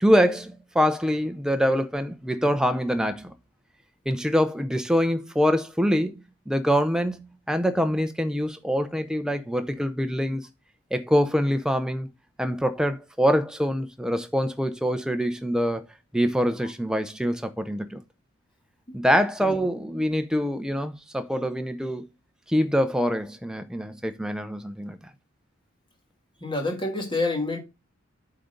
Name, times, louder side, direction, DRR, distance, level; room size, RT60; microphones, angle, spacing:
voice 1, 0.0-3.3 4.1-10.4 10.9-12.1 12.4-15.8 16.1-18.0 18.9-22.1 22.5-25.0, equal, 5° right, 0.6 m, -24 dB
voice 2, 26.4-27.6, left 2 dB, 20° left, 1.6 m, -28 dB
8.5 x 3.9 x 5.1 m
head